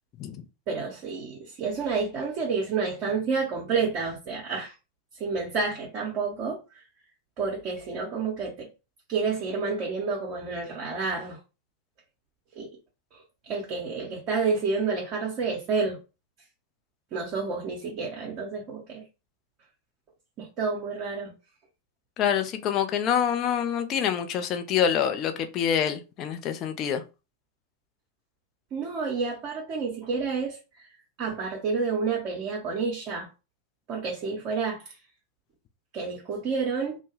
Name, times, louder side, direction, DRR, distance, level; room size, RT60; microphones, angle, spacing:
voice 1, 0.7-4.7 5.2-6.6 7.4-8.7 9.1-11.4 12.6-12.7 13.1-16.0 17.1-19.0 20.4-21.3 28.7-30.9 31.2-33.3 33.9-35.0 35.9-37.0, right 4 dB, 35° right, 0.7 m, -29 dB
voice 2, 22.2-27.0, left 8 dB, 35° left, 0.4 m, -26 dB
2.1 x 2.0 x 3.1 m
figure-of-eight pair, 90°, 0 cm